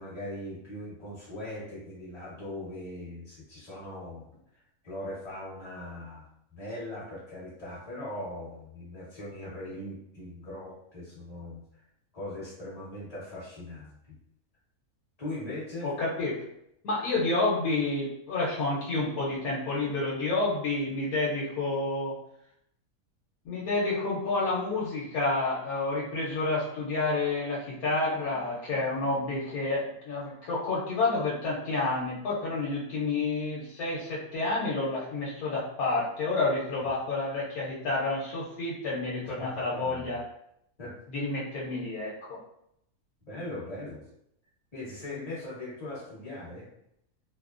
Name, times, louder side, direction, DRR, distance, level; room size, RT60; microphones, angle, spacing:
voice 1, 0.0-4.3 4.8-6.3 6.5-11.6 12.1-14.2 15.2-15.9 39.2-40.2 40.8-40.9 43.2-44.0 44.7-46.7, left 1 dB, 30° left, -8 dB, 1.1 m, -40 dB
voice 2, 15.8-16.3 16.8-22.1 23.4-40.2 41.1-42.4, left 3 dB, 90° left, -6 dB, 1.2 m, -29 dB
3.3 x 2.1 x 2.4 m, 0.76 s
omnidirectional pair, 1.5 m